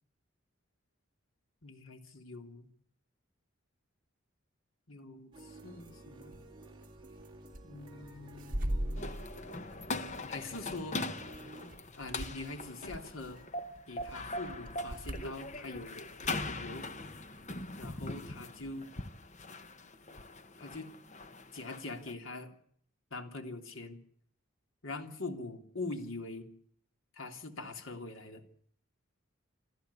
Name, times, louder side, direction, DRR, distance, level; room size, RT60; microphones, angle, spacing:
voice 1, 1.6-2.7 4.9-6.4 7.6-9.1 10.3-11.0 12.0-13.4 13.9-16.9 17.8-18.9 20.6-20.9 21.5-22.5 23.1-24.0 24.8-26.5 27.1-28.4, left 2 dB, 75° left, 6 dB, 3.0 m, -43 dB
sound 1, 5.3-11.7, right 2 dB, 20° right, 3.9 m, -53 dB
sound 2, 6.3-6.5 6.8-7.6 8.0-15.8 16.2-17.0 17.3-17.6, right 1 dB, 40° right, 2.6 m, -41 dB
sound 3, 9.0-22.1, left 2 dB, 35° left, 1.2 m, -41 dB
27.0 x 14.0 x 8.3 m, 0.63 s
head